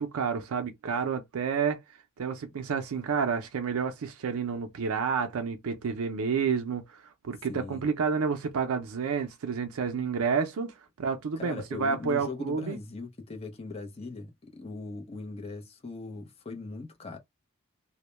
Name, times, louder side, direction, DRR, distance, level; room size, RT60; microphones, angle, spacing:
voice 1, 0.0-1.8 2.2-12.8, right 6 dB, 80° right, 0.4 m, -30 dB
voice 2, 7.5-7.8 11.4-17.2, left 3 dB, 30° left, 0.5 m, -40 dB
2.1 x 2.0 x 2.9 m
head